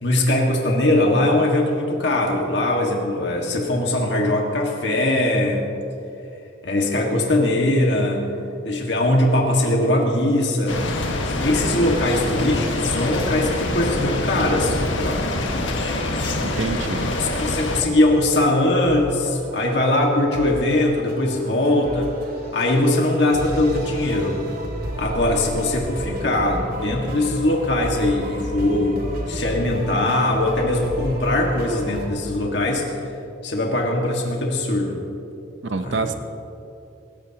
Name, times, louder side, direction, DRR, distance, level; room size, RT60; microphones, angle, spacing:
voice 1, 0.0-5.6 6.6-8.3 8.6-10.8 11.4-15.2 17.2-22.1 22.5-24.4 25.0-33.1 33.4-35.0 35.8-36.1, left 1 dB, 65° left, 0 dB, 1.8 m, -21 dB
sound 1, 10.7-17.8, left 2 dB, 80° left, 1.6 m, -25 dB
sound 2, 15.8-32.1, equal, 50° right, 2.5 m, -33 dB
voice 2, 16.4-17.1 35.6-36.1, right 3 dB, 70° right, 8 dB, 0.8 m, -26 dB
26.5 x 14.5 x 2.9 m, 2.7 s
head